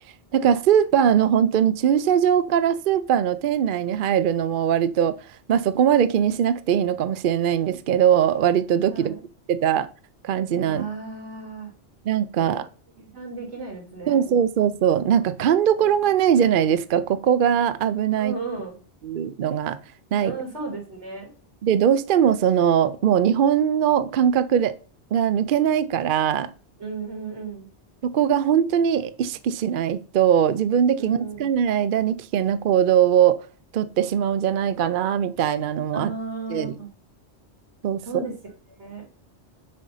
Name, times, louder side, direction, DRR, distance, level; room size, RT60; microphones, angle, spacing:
voice 1, 0.3-5.2 5.5-9.1 9.5-9.9 10.2-10.8 12.1-12.6 14.1-18.3 19.0-19.8 20.1-20.3 21.6-24.7 25.1-26.5 28.0-33.4 33.7-36.1 36.5-36.7 37.8-38.2, right 9 dB, 60° right, 13 dB, 0.6 m, -21 dB
voice 2, 8.9-9.2 10.6-11.7 12.4-12.6 13.0-14.2 18.1-18.7 20.2-21.3 26.8-27.7 31.0-31.5 35.9-36.9 38.0-38.4 38.8-39.1, right 3 dB, 85° right, 2 dB, 3.1 m, -34 dB
6.6 x 5.2 x 5.5 m, 0.37 s
omnidirectional pair, 1.1 m